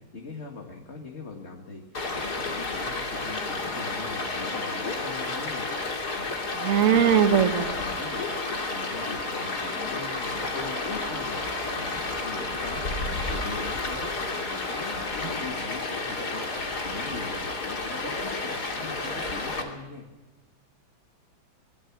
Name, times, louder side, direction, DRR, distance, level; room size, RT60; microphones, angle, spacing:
voice 1, 0.0-5.7 6.1-7.4 7.7-13.0 13.3-20.0, left 3 dB, 35° left, 1 dB, 2.2 m, -41 dB
Stream, 1.9-19.6, left 3 dB, 55° left, 3.3 m, -31 dB
voice 2, 6.6-7.7, right 9 dB, 50° right, 7 dB, 1.3 m, -20 dB
sound 1, 9.4-14.9, left 1 dB, 85° left, 8.3 m, -44 dB
25.5 x 20.0 x 6.1 m, 1.1 s
omnidirectional pair, 2.1 m